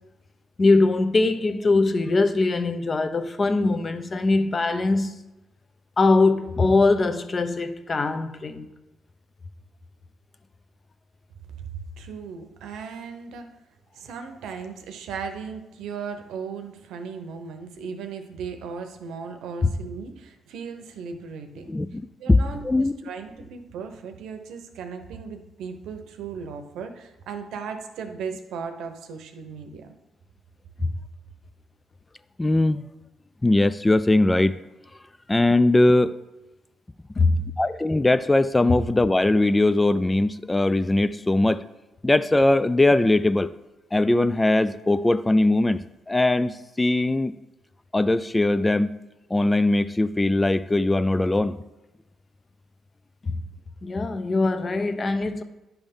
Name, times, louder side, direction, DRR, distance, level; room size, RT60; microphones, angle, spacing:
voice 1, 0.6-5.2 6.0-8.7 19.6-19.7 30.8-30.9 37.2-37.5 53.2-53.4 53.8-55.4, left 3 dB, 35° left, 0.7 m, -22 dB
voice 2, 11.5-13.5 13.9-21.7 22.2-29.9, right 5 dB, 85° right, 0.9 m, -37 dB
voice 3, 21.7-22.0 22.3-22.9 32.4-32.8 33.4-34.6 35.3-36.1 37.6-41.6 42.0-43.5 43.9-45.8 46.1-47.3 47.9-48.9 49.3-51.6, left 2 dB, 15° left, 0.3 m, -20 dB
10.5 x 3.5 x 5.4 m
cardioid pair, 90°, 0 cm